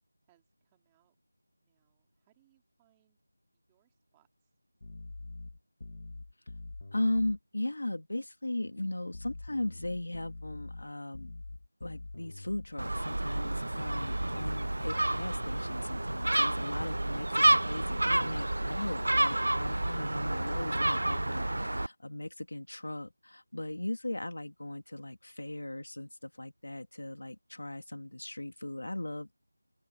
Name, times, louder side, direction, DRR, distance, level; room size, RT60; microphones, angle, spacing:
voice 1, 0.2-1.2 1.6-3.2 3.5-4.5, right 16 dB, 5° right, 3.1 m, -73 dB
sound 1, 4.8-7.4 9.1-12.8 13.8-15.5, left 2 dB, 30° left, 1.7 m, -45 dB
voice 2, 6.9-11.3 11.8-29.3, left 1 dB, 65° left, 2.8 m, -37 dB
Gull seagull, 12.8-21.9, right 1 dB, 60° right, 0.6 m, -29 dB
open air
figure-of-eight pair, 180°, 0 cm